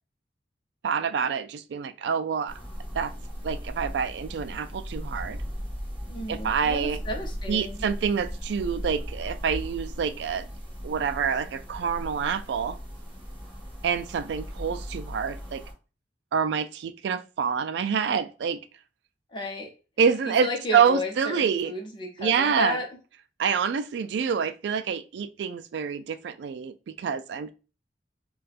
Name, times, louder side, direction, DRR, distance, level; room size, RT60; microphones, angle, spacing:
voice 1, 0.8-2.5 2.9-3.1 3.4-5.4 6.3-7.0 7.5-10.5 10.8-12.8 13.8-15.6 16.3-18.6 20.0-20.5 20.7-21.7 22.2-22.8 23.4-27.5, right 6 dB, 70° right, 0.3 m, -27 dB
sound 1, 2.5-15.7, equal, 10° right, 1.2 m, -37 dB
voice 2, 6.1-7.8 19.3-19.7 20.3-22.9, left 2 dB, 25° left, 0.7 m, -33 dB
4.1 x 2.3 x 2.4 m
head